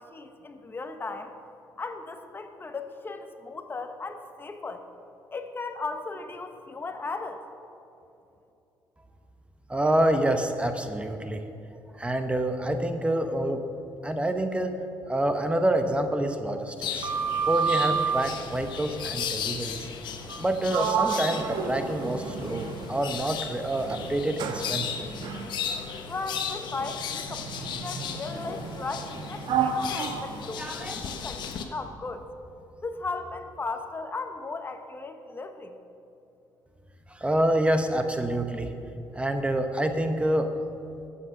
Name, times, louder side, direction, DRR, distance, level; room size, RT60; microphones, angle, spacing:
voice 1, 0.0-1.3 1.8-4.8 5.3-7.4 26.1-32.2 32.8-35.7, left 3 dB, 25° left, 7 dB, 0.9 m, -36 dB
voice 2, 9.7-11.4 12.0-13.6 14.0-14.7 15.1-17.1 17.5-19.9 20.4-25.0 30.6-31.0 37.2-38.7 39.1-40.5, right 1 dB, 15° right, 7 dB, 0.8 m, -27 dB
sound 1, 16.8-31.6, left 7 dB, 70° left, 1.1 m, -36 dB
Sliding door, 16.8-18.4 20.2-20.4 20.7-23.2 23.8-31.3, right 6 dB, 65° right, 1.1 m, -31 dB
13.0 x 8.6 x 6.5 m, 2.9 s
cardioid pair, 110°, 8 cm